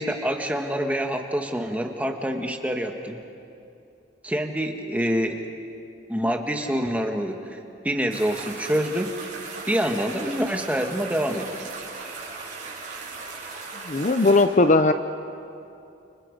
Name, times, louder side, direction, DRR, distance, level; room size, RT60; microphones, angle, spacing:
voice 1, 0.0-3.2 4.2-5.5 6.1-7.6 7.8-9.1 9.7-11.7, equal, 5° right, 3 dB, 1.5 m, -26 dB
sound 1, 8.1-14.4, right 4 dB, 40° right, 6.4 m, -38 dB
voice 2, 13.9-14.9, left 2 dB, 40° left, 10 dB, 0.6 m, -18 dB
30.0 x 29.0 x 5.3 m, 2.7 s
head